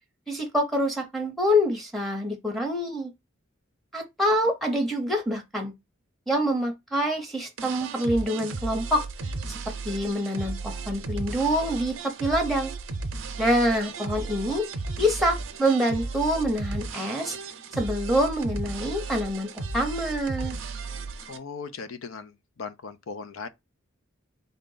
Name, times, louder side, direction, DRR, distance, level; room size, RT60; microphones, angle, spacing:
voice 1, 0.3-3.1 3.9-5.7 6.3-9.0 9.8-12.7 13.4-14.7 15.0-17.4 17.7-20.6, equal, ahead, 0.7 m, -26 dB
sound 1, 7.6-21.4, right 3 dB, 70° right, 0.6 m, -35 dB
voice 2, 21.3-22.3 22.6-23.5, left 5 dB, 80° left, 0.5 m, -38 dB
3.8 x 2.2 x 3.8 m
head